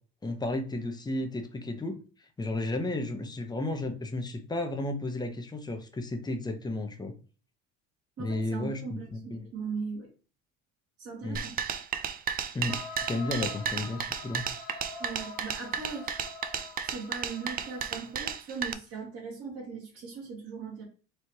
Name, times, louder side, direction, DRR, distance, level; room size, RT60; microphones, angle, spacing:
voice 1, 0.2-2.0 2.4-7.1 8.2-9.5 11.2-11.4 12.5-12.8 13.1-14.4, left 2 dB, 15° left, 5 dB, 0.8 m, -33 dB
voice 2, 8.2-10.1 11.0-11.6 15.0-16.3 16.8-20.8, right 5 dB, 50° right, -6 dB, 2.4 m, -39 dB
sound 1, 11.4-18.7, right 7 dB, 30° right, 0.4 m, -33 dB
sound 2, 12.7-18.3, left 4 dB, 50° left, 1.1 m, -45 dB
4.6 x 3.3 x 2.8 m, 0.37 s
cardioid pair, 125°, 31 cm